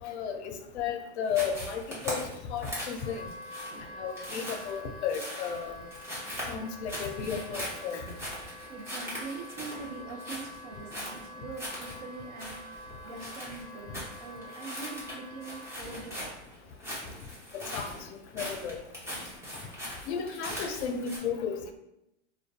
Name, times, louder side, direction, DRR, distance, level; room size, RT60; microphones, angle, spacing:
voice 1, 0.0-3.3 4.0-5.8 6.5-8.1 17.5-18.8 20.1-21.7, left 7 dB, 65° left, 5 dB, 0.5 m, -34 dB
sound 1, 1.3-21.2, equal, 10° right, 0.8 m, -40 dB
Wind instrument woodwind instrument, 2.9-16.1, left 1 dB, 25° left, 1.0 m, -47 dB
voice 2, 8.7-16.4, right 4 dB, 40° right, 2 dB, 0.5 m, -43 dB
2.5 x 2.2 x 2.3 m, 0.83 s
hypercardioid pair, 115°, 35 cm